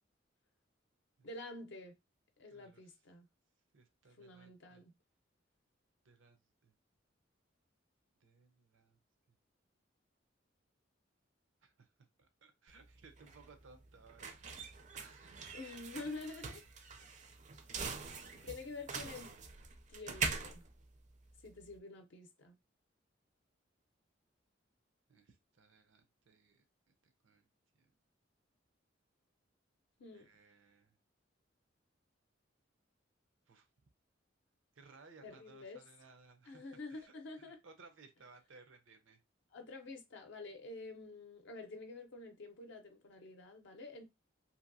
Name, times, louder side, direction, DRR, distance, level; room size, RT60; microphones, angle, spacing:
voice 1, 1.2-1.9 2.4-3.3 4.2-4.9 15.5-16.6 18.4-19.4 19.9-20.6 21.4-22.5 30.0-30.3 35.2-35.8 36.5-37.6 39.5-44.0, left 3 dB, 65° left, 0.6 m, -48 dB
voice 2, 2.5-3.0 3.7-4.8 6.0-6.7 8.2-9.0 11.6-11.9 12.2-14.3 14.9-15.4 17.0-17.2 17.9-18.7 25.1-26.6 27.0-27.5 27.7-27.9 30.1-31.0 33.5-33.7 34.7-39.2, right 4 dB, 85° right, 0.7 m, -62 dB
sound 1, 12.7-21.7, right 5 dB, 40° right, 0.5 m, -44 dB
2.8 x 2.6 x 2.6 m
head